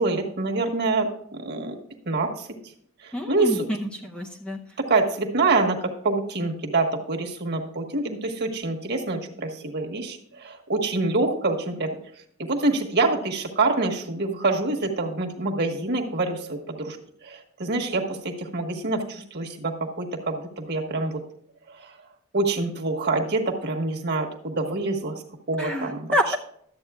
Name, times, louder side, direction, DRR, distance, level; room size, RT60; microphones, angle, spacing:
voice 1, 0.0-1.8 2.1-2.5 3.0-3.7 4.8-11.9 12.4-17.0 17.2-21.2 21.8-21.9 22.3-25.2 25.5-26.1, right 3 dB, 50° right, 1 dB, 1.4 m, -26 dB
voice 2, 3.1-4.6 25.6-26.4, equal, 5° left, -1 dB, 0.7 m, -27 dB
12.5 x 8.4 x 2.4 m, 0.68 s
head